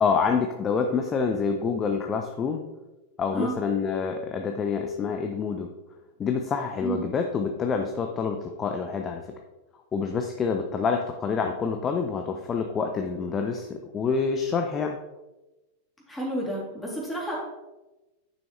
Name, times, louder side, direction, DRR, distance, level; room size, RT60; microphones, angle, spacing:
voice 1, 0.0-2.7 3.2-5.7 6.2-9.2 9.9-15.0, left 5 dB, 25° left, 4 dB, 0.7 m, -27 dB
voice 2, 16.1-17.3, right 1 dB, 5° left, -4 dB, 2.9 m, -30 dB
10.0 x 6.2 x 3.2 m, 1.0 s
figure-of-eight pair, 90°, 0 cm